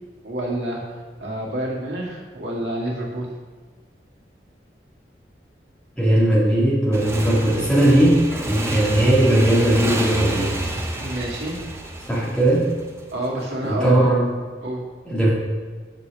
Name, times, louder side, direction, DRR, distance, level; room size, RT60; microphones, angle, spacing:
voice 1, 0.2-3.3 11.0-11.6 13.1-14.1 14.6-14.8, right 1 dB, 90° right, -3 dB, 1.9 m, -28 dB
voice 2, 6.0-10.6 12.1-12.7 13.6-14.3 15.1-15.3, right 1 dB, 5° left, -7 dB, 2.1 m, -18 dB
Motorcycle / Engine, 6.9-13.3, right 1 dB, 15° right, 0.7 m, -29 dB
7.5 x 5.0 x 5.9 m, 1.5 s
head